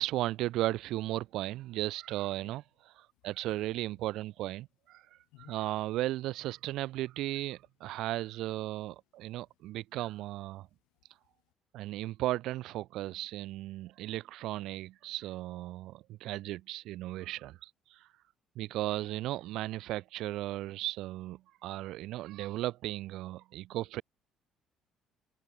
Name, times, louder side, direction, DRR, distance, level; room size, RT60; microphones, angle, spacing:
voice 1, 0.0-2.6 3.0-5.1 5.5-10.7 11.7-18.1 18.5-24.0, right 16 dB, 75° right, 1.4 m, -36 dB
voice 2, 3.1-3.7 5.0-5.6 9.4-9.8 10.6-11.5, left 25 dB, 85° left, 7.9 m, -62 dB
supercardioid pair, 75°, 0 cm